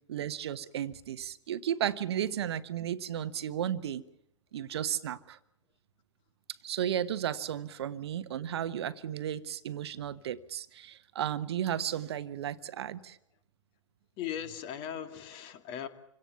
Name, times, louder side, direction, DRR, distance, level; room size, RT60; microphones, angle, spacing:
voice 1, 0.1-4.0 4.5-5.4 6.6-13.2, right 10 dB, 55° right, 1.2 m, -34 dB
voice 2, 14.2-15.9, left 9 dB, 35° left, 2.3 m, -38 dB
27.0 x 17.5 x 7.0 m
figure-of-eight pair, 110°, 16 cm